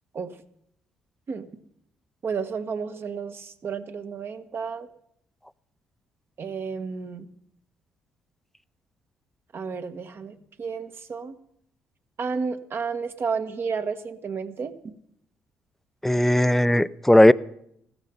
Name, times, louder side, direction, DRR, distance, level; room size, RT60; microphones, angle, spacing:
voice 1, 2.2-4.9 6.4-7.3 9.5-11.4 12.2-14.7, right 5 dB, 50° right, 8 dB, 1.4 m, -31 dB
voice 2, 16.0-17.3, left 1 dB, 5° left, 17 dB, 0.5 m, -17 dB
15.5 x 13.5 x 5.5 m, 0.73 s
supercardioid pair, 65°, 5 cm